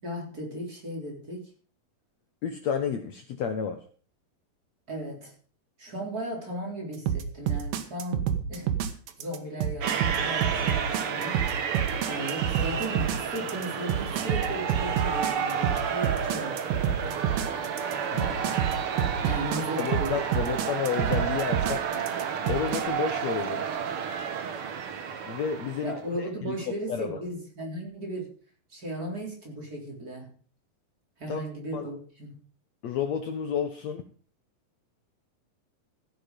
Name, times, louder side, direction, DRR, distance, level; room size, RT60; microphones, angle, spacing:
voice 1, 0.0-1.5 4.9-5.3 5.8-8.8 9.2-11.5 12.0-17.2 19.2-20.6 25.8-28.3 28.7-30.3 31.2-32.4, right 1 dB, 25° right, 0 dB, 4.1 m, -36 dB
voice 2, 2.4-3.8 18.1-18.6 19.8-22.0 22.5-23.6 25.3-27.2 31.3-31.4 31.7-31.9 32.8-34.0, left 7 dB, 65° left, 6 dB, 2.0 m, -31 dB
sound 1, 7.1-22.8, right 9 dB, 85° right, 3.0 m, -28 dB
sound 2, 9.8-26.0, right 7 dB, 55° right, 1.7 m, -31 dB
15.0 x 9.0 x 5.3 m, 0.42 s
omnidirectional pair, 4.0 m